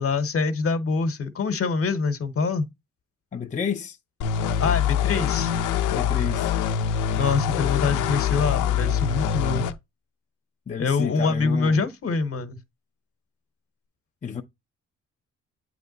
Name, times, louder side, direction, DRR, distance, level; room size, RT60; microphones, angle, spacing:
voice 1, 0.0-2.6 4.6-5.5 7.1-9.6 10.8-12.6, left 4 dB, 50° left, 1.1 m, -25 dB
voice 2, 3.3-4.0 5.9-6.5 10.7-11.8 14.2-14.4, left 6 dB, 25° left, 0.6 m, -30 dB
sound 1, 4.2-9.7, left 8 dB, 85° left, 0.7 m, -24 dB
8.1 x 3.3 x 4.0 m
cardioid pair, 90°, 30 cm